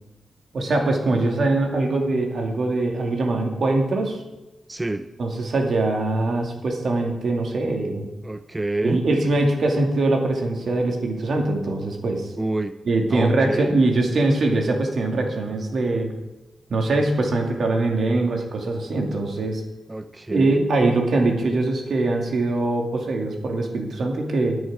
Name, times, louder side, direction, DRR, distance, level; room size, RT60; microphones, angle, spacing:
voice 1, 0.5-4.2 5.2-8.1 8.8-12.3 12.9-16.1 16.7-19.6 20.3-24.6, right 2 dB, 65° right, 2 dB, 2.3 m, -22 dB
voice 2, 4.7-5.1 8.2-9.0 12.4-12.7 13.1-13.8 19.9-20.6, right 2 dB, 20° right, 10 dB, 0.5 m, -27 dB
19.0 x 6.4 x 4.9 m, 1.0 s
cardioid pair, 80°, 0 cm